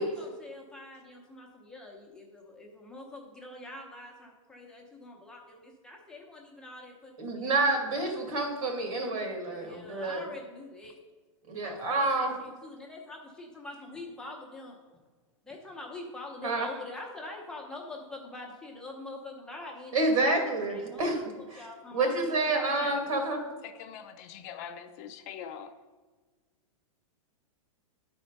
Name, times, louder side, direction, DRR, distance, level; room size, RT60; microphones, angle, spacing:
voice 1, 0.0-7.6 9.5-11.0 11.6-14.8 15.4-20.3 20.7-21.2 21.6-23.3, left 2 dB, 5° left, -2 dB, 0.7 m, -45 dB
voice 2, 7.2-10.2 11.5-12.3 16.4-16.7 19.9-21.2 21.5-21.7 21.9-23.4, right 2 dB, 85° right, 3 dB, 2.4 m, -28 dB
voice 3, 23.6-25.7, left 8 dB, 30° left, 7 dB, 0.4 m, -43 dB
10.5 x 4.3 x 5.3 m, 1.4 s
supercardioid pair, 165°, 17 cm